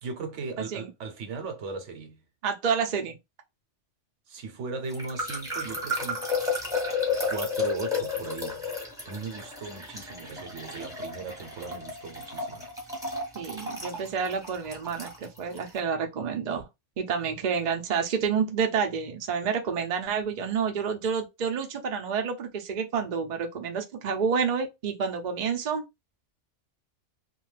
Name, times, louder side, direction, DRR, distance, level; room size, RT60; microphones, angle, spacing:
voice 1, 0.0-2.2 4.3-6.3 7.3-8.7 9.0-12.7, right 4 dB, 75° right, 1.0 m, -37 dB
voice 2, 2.4-3.1 13.3-16.7 17.0-25.8, right 6 dB, 50° right, 0.5 m, -29 dB
sound 1, 4.9-15.7, left 3 dB, 5° right, 0.8 m, -32 dB
2.4 x 2.2 x 3.2 m
omnidirectional pair, 1.2 m